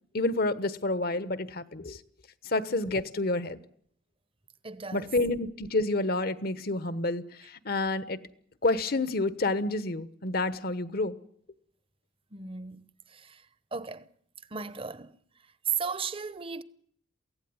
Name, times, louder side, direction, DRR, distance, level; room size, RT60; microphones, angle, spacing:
voice 1, 0.1-2.0 2.5-3.6 4.9-7.2 7.6-8.2 8.6-11.2, left 2 dB, 55° left, 1.2 m, -29 dB
voice 2, 4.6-5.1 12.3-13.5 13.7-14.1 14.5-15.2 15.8-16.6, right 4 dB, 30° right, 0.9 m, -38 dB
23.0 x 16.5 x 9.6 m
head